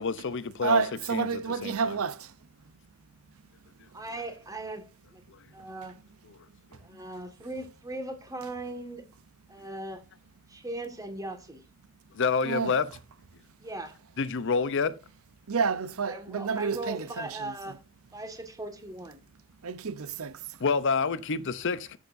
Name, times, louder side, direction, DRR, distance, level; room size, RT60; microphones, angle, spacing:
voice 1, 0.0-0.8 1.1-2.0 12.1-12.9 14.2-14.9 20.6-22.0, left 5 dB, 60° left, 0.7 m, -28 dB
voice 2, 0.6-2.3 12.4-12.7 15.5-17.5 19.6-20.4, right 5 dB, 85° right, 0.7 m, -29 dB
voice 3, 3.9-5.2 5.5-5.9 6.8-9.1 9.5-10.0 10.5-11.6 13.6-14.0 16.1-17.8 18.1-19.2, right 2 dB, 15° right, 1.8 m, -39 dB
13.5 x 6.5 x 2.6 m
head